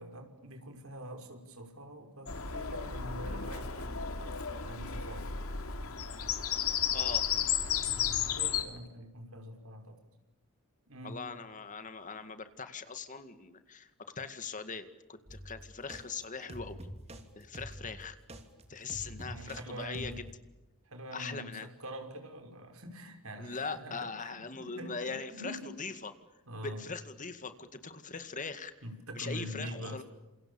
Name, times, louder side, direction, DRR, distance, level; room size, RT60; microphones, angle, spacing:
voice 1, 0.0-4.0 4.7-5.3 7.8-10.0 10.9-11.2 19.0-20.2 20.8-25.6 26.5-26.8 28.8-30.0, equal, 75° right, 5 dB, 5.5 m, -45 dB
Bird vocalization bird call bird song, 2.3-8.6, left 8 dB, 80° left, 3.0 m, -33 dB
voice 2, 6.9-7.2 11.0-13.9 14.2-16.8 17.4-18.2 18.7-20.2 21.1-21.7 23.4-26.1 26.6-28.7 29.1-30.0, left 4 dB, 35° left, 10 dB, 2.1 m, -41 dB
sound 1, 15.3-16.0 16.5-17.2 17.5-19.6 19.9-20.3, equal, 30° right, 3.2 m, -46 dB
29.5 x 28.0 x 7.2 m, 1.0 s
head